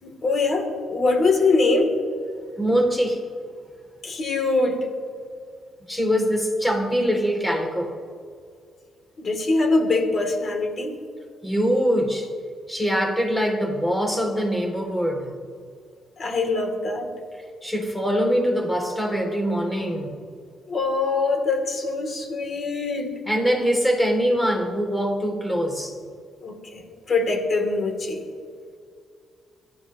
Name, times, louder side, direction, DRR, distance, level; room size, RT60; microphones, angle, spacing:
voice 1, 0.0-1.9 4.0-4.9 9.2-11.0 16.2-17.1 20.7-23.2 26.4-28.2, left 3 dB, 45° left, 3 dB, 2.9 m, -23 dB
voice 2, 2.6-3.2 5.9-7.9 11.4-12.3 12.7-15.3 17.6-20.2 23.3-26.0, equal, 10° left, 2 dB, 2.7 m, -23 dB
25.5 x 12.5 x 3.1 m, 2.3 s
cardioid pair, 90°, 0 cm